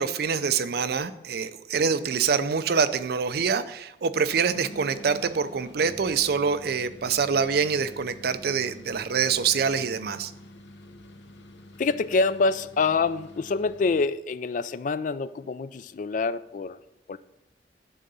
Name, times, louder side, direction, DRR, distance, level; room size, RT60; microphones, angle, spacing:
voice 1, 0.0-10.3, right 6 dB, 60° right, 12 dB, 0.5 m, -25 dB
sound 1, 4.1-14.2, left 1 dB, 75° left, 0.7 m, -47 dB
voice 2, 11.8-16.8 17.1-17.2, left 4 dB, 45° left, 15 dB, 0.3 m, -26 dB
10.5 x 3.8 x 6.8 m, 0.93 s
head